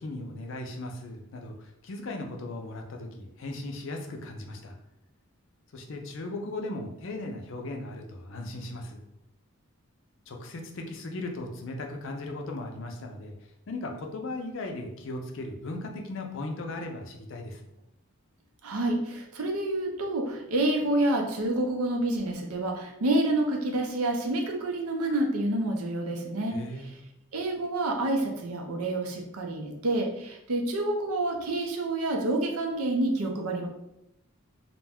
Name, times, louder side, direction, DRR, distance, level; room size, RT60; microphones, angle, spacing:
voice 1, 0.0-4.8 5.7-9.0 10.3-17.6 26.5-26.9, left 2 dB, 60° left, 3 dB, 0.4 m, -37 dB
voice 2, 18.6-26.6 27.3-33.7, right 1 dB, 85° right, 2 dB, 0.6 m, -28 dB
2.5 x 2.1 x 3.4 m, 0.84 s
head